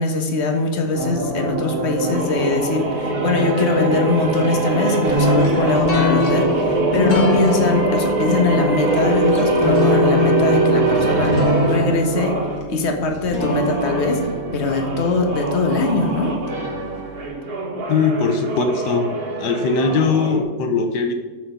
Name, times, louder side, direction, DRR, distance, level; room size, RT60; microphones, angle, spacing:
voice 1, 0.0-11.4 11.7-12.4 12.7-14.3 14.5-16.4, left 3 dB, 45° left, 4 dB, 1.4 m, -21 dB
sound 1, 0.9-12.6 13.3-20.4, right 3 dB, 60° right, 2.0 m, -23 dB
sound 2, 5.1-16.1, left 4 dB, 60° left, 2.3 m, -24 dB
voice 2, 17.9-19.1 19.4-21.1, left 4 dB, 75° left, 5 dB, 1.4 m, -20 dB
13.0 x 4.7 x 5.1 m, 1.4 s
omnidirectional pair, 1.8 m